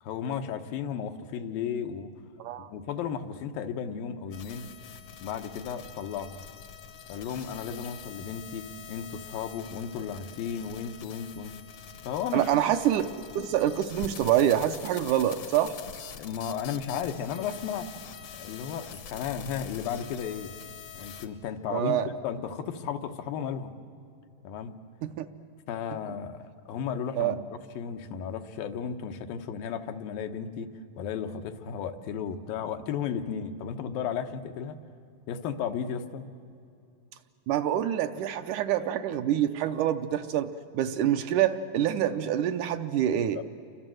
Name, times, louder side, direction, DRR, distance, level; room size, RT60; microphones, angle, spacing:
voice 1, 0.0-2.1 2.6-4.7 5.2-6.4 7.1-11.6 12.1-12.5 16.1-17.9 18.4-20.5 20.9-23.7 24.4-24.8 25.7-30.7 31.0-34.8 35.3-36.2 43.4-43.5, left 7 dB, 85° left, 6 dB, 2.9 m, -34 dB
voice 2, 2.4-2.7 12.3-13.1 13.4-15.8 21.7-22.1 25.0-25.3 27.2-27.4 37.5-43.4, right 11 dB, 75° right, 8 dB, 2.0 m, -26 dB
sound 1, 4.3-21.3, left 7 dB, 65° left, 1.5 m, -45 dB
29.0 x 24.5 x 7.8 m, 2.5 s
omnidirectional pair, 4.0 m